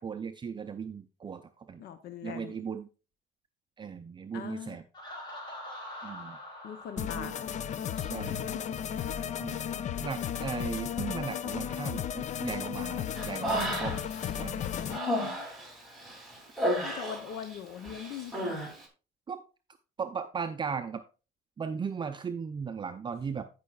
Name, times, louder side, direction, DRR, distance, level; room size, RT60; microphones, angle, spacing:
voice 1, 0.0-1.8 2.2-2.9 3.8-4.8 6.0-6.4 7.0-7.3 7.9-8.4 9.4-9.6 10.0-14.1 14.3-14.6 19.3-19.4 20.0-21.0 21.6-23.4, right 6 dB, 25° right, 8 dB, 0.5 m, -37 dB
voice 2, 1.8-2.6 4.3-4.8 6.6-7.6 8.2-8.8 14.9-15.5 16.8-18.7, left 9 dB, 75° left, 9 dB, 0.8 m, -41 dB
Laughter, 4.9-8.6, left 1 dB, 25° left, 3.1 m, -45 dB
sound 1, 7.0-15.0, left 9 dB, 45° left, 0.5 m, -34 dB
Human voice, 13.1-14.2 14.6-17.6 17.8-18.7, equal, ahead, 3.0 m, -32 dB
16.5 x 5.5 x 2.4 m, 0.33 s
cardioid pair, 110°, 17 cm